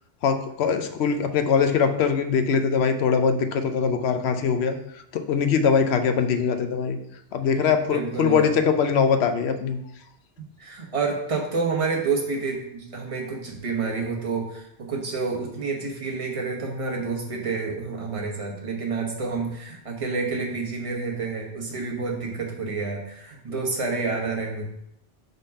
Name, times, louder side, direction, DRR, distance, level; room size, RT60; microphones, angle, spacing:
voice 1, 0.2-4.8 5.1-7.0 7.3-9.8, left 6 dB, 80° left, 8 dB, 0.9 m, -22 dB
voice 2, 7.8-8.5 10.4-24.6, right 4 dB, 30° right, 0 dB, 1.2 m, -29 dB
5.2 x 3.9 x 5.3 m, 0.76 s
omnidirectional pair, 1.1 m